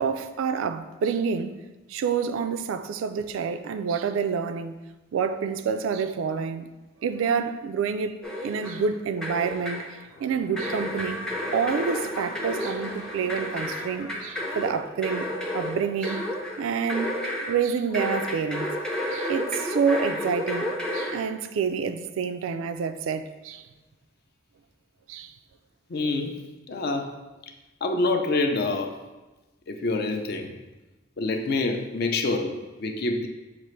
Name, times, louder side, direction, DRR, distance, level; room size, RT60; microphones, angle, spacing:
voice 1, 0.0-1.6 1.9-4.8 5.1-6.7 7.0-11.2 11.5-16.2 16.6-17.2 17.5-18.7 19.1-23.6 25.1-25.3, right 6 dB, 75° right, 0.3 m, -28 dB
sound 1, 8.2-8.9 9.2-9.9 10.6-17.6 17.9-21.2, left 1 dB, 5° left, 0.5 m, -31 dB
sound 2, 10.0-15.6 16.0-16.1, left 1 dB, 80° left, 0.8 m, -44 dB
voice 2, 25.9-26.4 26.7-27.1 27.8-28.9 29.7-30.5 31.2-33.3, left 3 dB, 50° left, 0.4 m, -26 dB
6.7 x 2.4 x 3.1 m
head